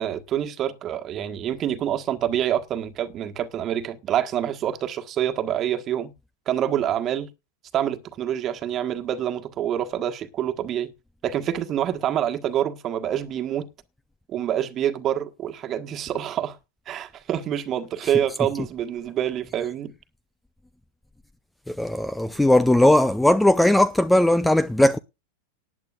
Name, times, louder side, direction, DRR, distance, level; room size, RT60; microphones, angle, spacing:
voice 1, 0.0-6.1 6.5-7.3 7.7-10.9 11.2-13.7 14.3-16.6 16.9-19.9, right 10 dB, 30° right, 1.5 m, -26 dB
voice 2, 21.7-25.0, left 1 dB, 5° left, 0.5 m, -18 dB
19.0 x 10.5 x 2.5 m
figure-of-eight pair, 90°, 0 cm